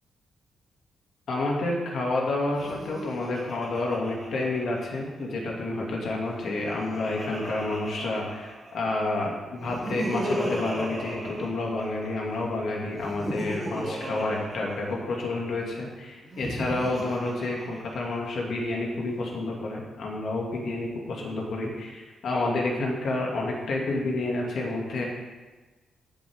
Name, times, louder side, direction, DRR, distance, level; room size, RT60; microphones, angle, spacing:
voice 1, 1.3-25.0, left 2 dB, 60° left, -2 dB, 2.4 m, -29 dB
Laughter, 2.5-5.2 6.3-8.9 9.6-12.3 12.9-15.3 16.2-18.3, equal, 5° right, 3.4 m, -36 dB
15.0 x 7.1 x 3.7 m, 1.2 s
wide cardioid pair, 150°, 0 cm